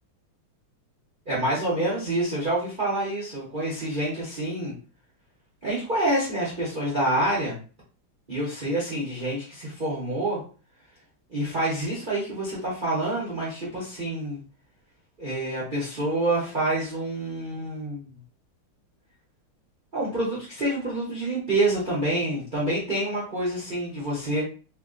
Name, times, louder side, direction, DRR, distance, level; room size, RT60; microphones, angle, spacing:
voice 1, 1.3-4.7 5.6-7.6 8.3-10.4 11.3-14.4 15.2-18.1 19.9-24.4, right 1 dB, 40° right, -6 dB, 0.7 m, -27 dB
3.6 x 2.2 x 3.8 m, 0.37 s
omnidirectional pair, 2.3 m